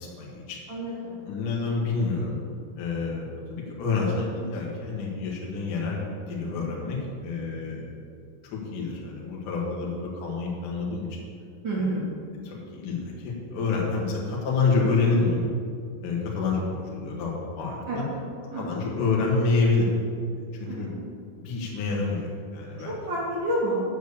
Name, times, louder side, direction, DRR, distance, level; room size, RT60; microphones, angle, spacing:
voice 1, 0.0-0.6 1.3-2.4 2.8-8.0 8.4-11.2 11.8-11.9 12.4-15.4 16.0-18.0 18.6-19.9 20.5-20.9 21.4-22.9, left 4 dB, 65° left, -3 dB, 2.1 m, -28 dB
voice 2, 0.7-1.2 11.6-12.0 17.9-18.1 18.5-18.7 20.6-21.0 22.8-23.8, right 1 dB, 75° right, -8 dB, 1.0 m, -29 dB
7.6 x 6.9 x 8.1 m, 2.3 s
omnidirectional pair, 6.0 m